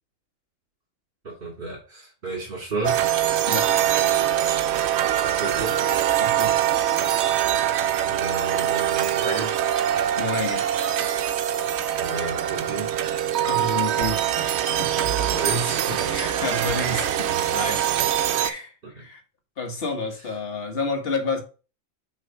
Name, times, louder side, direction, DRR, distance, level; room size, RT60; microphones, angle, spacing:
voice 1, 1.2-3.0 5.2-5.8 8.1-9.5 11.9-12.9 15.1-16.2 18.0-18.1 18.8-19.1, right 2 dB, 45° right, 2.8 m, -32 dB
sound 1, 2.8-18.5, right 10 dB, 65° right, 0.8 m, -23 dB
voice 2, 6.2-6.7 10.2-10.7 13.5-15.1 16.0-17.9 18.4-19.2 19.6-21.4, left 3 dB, 45° left, 1.4 m, -30 dB
6.5 x 3.2 x 5.6 m
omnidirectional pair, 1.4 m